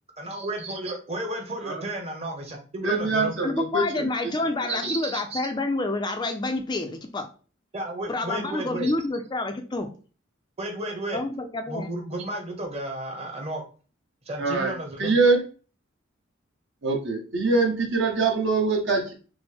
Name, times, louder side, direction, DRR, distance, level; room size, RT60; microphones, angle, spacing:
voice 1, 0.2-3.3 4.8-5.4 7.7-8.9 10.6-11.2 11.7-13.6 14.2-15.1, right 1 dB, 30° right, 1 dB, 1.0 m, -33 dB
voice 2, 2.8-4.1 4.6-4.8 14.4-15.4 16.8-19.1, right 3 dB, 65° right, 1 dB, 1.2 m, -24 dB
voice 3, 3.4-7.3 8.0-9.9 11.1-11.9, left 2 dB, 20° left, 6 dB, 0.4 m, -28 dB
6.0 x 2.1 x 3.4 m, 0.37 s
head